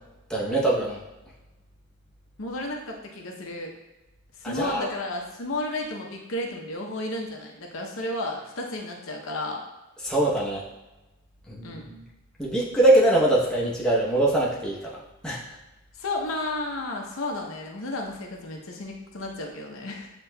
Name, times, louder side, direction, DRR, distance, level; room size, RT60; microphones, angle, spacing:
voice 1, 0.3-1.0 4.4-4.9 10.0-10.6 11.5-12.0 12.4-15.0 15.2-15.4, right 1 dB, 5° left, -6 dB, 0.8 m, -23 dB
voice 2, 2.4-3.7 4.4-9.6 11.6-11.9 15.9-20.1, left 2 dB, 70° left, 0 dB, 0.8 m, -32 dB
7.8 x 3.0 x 2.2 m, 1.0 s
head